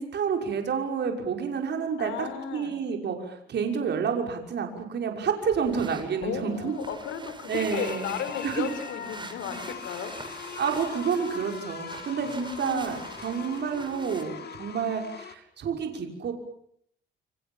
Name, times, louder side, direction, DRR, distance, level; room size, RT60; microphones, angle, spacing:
voice 1, 0.0-6.7 7.5-8.1 8.4-8.7 10.6-16.3, right 6 dB, 60° right, 3 dB, 6.1 m, -29 dB
voice 2, 2.0-2.8 6.2-10.1 12.2-13.0, left 7 dB, 85° left, 11 dB, 5.2 m, -35 dB
sound 1, 5.4-14.2, right 3 dB, 25° right, 5.8 m, -44 dB
sound 2, 7.7-15.3, left 7 dB, 55° left, 3.1 m, -41 dB
29.0 x 26.5 x 7.4 m, 0.69 s
cardioid pair, 90°, 20 cm